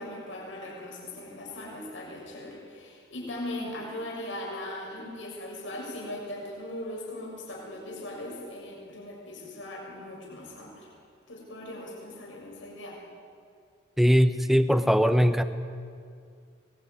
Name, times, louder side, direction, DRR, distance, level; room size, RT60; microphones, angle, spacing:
voice 1, 0.0-10.9 11.3-13.0, left 1 dB, 80° left, -2 dB, 6.6 m, -39 dB
voice 2, 14.0-15.4, equal, ahead, 10 dB, 0.9 m, -21 dB
24.0 x 20.5 x 9.6 m, 2.2 s
head